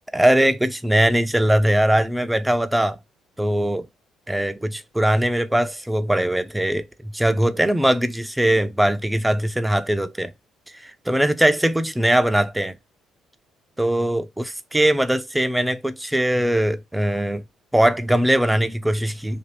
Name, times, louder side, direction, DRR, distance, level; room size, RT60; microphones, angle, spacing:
voice 1, 0.1-3.0 3.4-3.9 4.3-10.3 10.7-12.7 13.8-17.4 17.7-19.4, right 1 dB, 10° right, 0.4 m, -21 dB
2.5 x 2.3 x 3.2 m
supercardioid pair, 65°, 0 cm